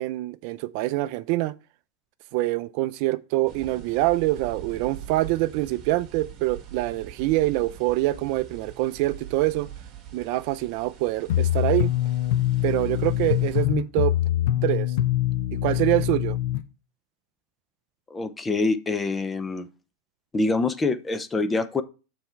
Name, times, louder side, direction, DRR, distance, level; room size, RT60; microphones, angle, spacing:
voice 1, 0.0-1.5 2.3-9.7 10.1-11.9 12.6-14.1 14.6-14.9 15.6-16.4, right 18 dB, 55° right, 0.4 m, -25 dB
sound 1, 3.5-13.6, right 9 dB, 40° right, 1.8 m, -43 dB
sound 2, 11.3-16.6, left 13 dB, 75° left, 0.6 m, -24 dB
voice 2, 18.1-19.7 20.3-21.8, left 3 dB, 15° left, 0.6 m, -25 dB
7.0 x 4.2 x 4.5 m
supercardioid pair, 150°, 0 cm